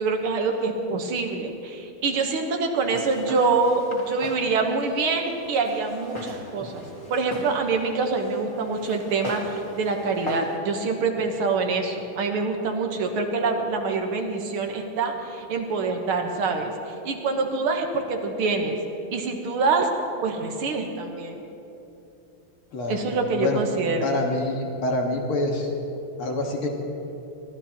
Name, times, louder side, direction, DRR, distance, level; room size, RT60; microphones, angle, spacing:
voice 1, 0.0-6.8 7.1-16.7 17.0-18.8 19.1-19.9 20.2-21.4 22.9-24.1, right 4 dB, 85° right, 3 dB, 2.1 m, -25 dB
Walk footsteps, 2.8-10.6, left 1 dB, 15° left, 1.8 m, -39 dB
voice 2, 24.0-25.7 26.2-26.7, left 2 dB, 75° left, 0 dB, 2.5 m, -26 dB
22.5 x 15.0 x 3.0 m, 2.9 s
omnidirectional pair, 2.3 m